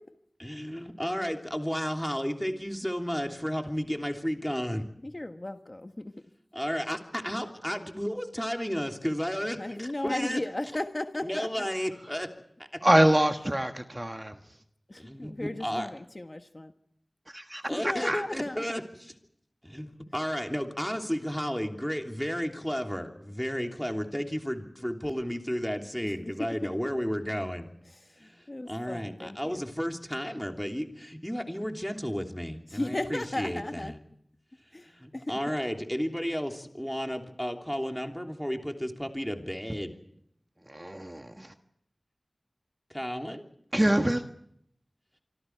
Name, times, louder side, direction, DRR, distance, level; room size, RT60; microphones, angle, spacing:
voice 1, 0.4-4.8 6.5-10.4 11.2-12.3 15.0-15.9 17.7-19.1 19.6-27.7 28.2-34.0 34.9-39.9 42.9-43.4, equal, 5° left, 3.1 m, -33 dB
voice 2, 5.0-6.2 9.6-11.7 14.9-16.7 17.7-18.8 26.0-26.7 27.9-29.6 32.7-33.9 34.7-35.4, left 1 dB, 40° left, 1.5 m, -35 dB
voice 3, 12.8-14.2 17.3-17.6 18.0-18.2 40.7-41.5 43.7-44.2, right 1 dB, 25° right, 1.4 m, -24 dB
27.0 x 25.0 x 4.7 m
wide cardioid pair, 55°, 0 cm